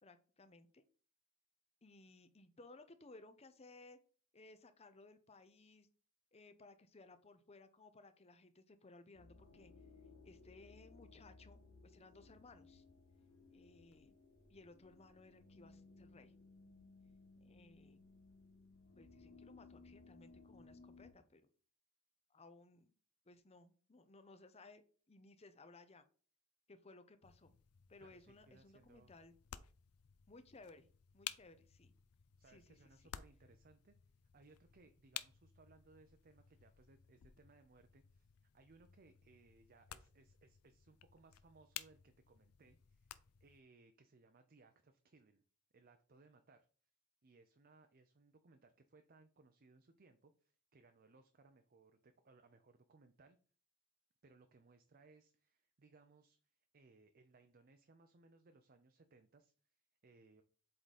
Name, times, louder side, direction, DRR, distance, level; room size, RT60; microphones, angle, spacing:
voice 1, 0.0-0.8 1.8-4.0 4.3-5.9 6.3-9.7 10.2-12.8 13.5-14.2 14.5-16.3 17.4-18.0 19.0-21.4 22.3-22.9 23.3-24.8 25.1-26.0 26.7-27.5 27.9-29.3 30.3-30.9 31.1-31.9 32.5-32.8, left 3 dB, 30° left, 10 dB, 0.7 m, -61 dB
sound 1, 9.1-21.1, left 3 dB, 65° left, 1.3 m, -62 dB
sound 2, 27.2-43.6, left 12 dB, 85° left, 0.5 m, -55 dB
voice 2, 28.0-29.1 32.4-33.9 34.3-45.4 45.7-46.7 47.2-53.4 54.2-60.4, right 3 dB, 40° right, 7 dB, 0.6 m, -66 dB
7.8 x 3.8 x 4.2 m, 0.40 s
head